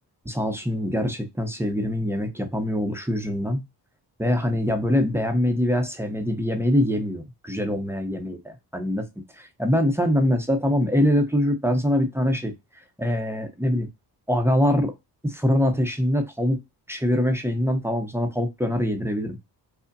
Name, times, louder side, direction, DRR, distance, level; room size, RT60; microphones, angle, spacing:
voice 1, 0.2-3.6 4.2-9.1 9.3-12.5 13.0-13.9 14.3-14.9 15.2-16.6 16.9-19.4, left 1 dB, 5° right, 0.6 m, -23 dB
5.2 x 2.1 x 2.5 m
cardioid pair, 105°, 41 cm